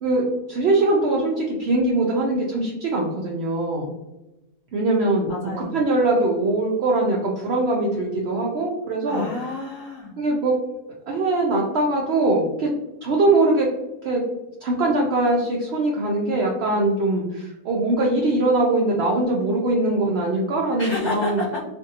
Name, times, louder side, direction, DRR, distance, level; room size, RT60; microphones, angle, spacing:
voice 1, 0.0-3.9 4.7-5.3 5.6-9.3 10.2-10.6 11.1-12.7 13.0-13.7 14.0-14.2 14.6-21.4, right 2 dB, 80° right, -2 dB, 0.5 m, -22 dB
voice 2, 5.3-5.8 9.1-10.1 20.8-21.6, left 3 dB, 60° left, -5 dB, 0.8 m, -30 dB
2.6 x 2.5 x 2.6 m, 0.97 s
omnidirectional pair, 1.6 m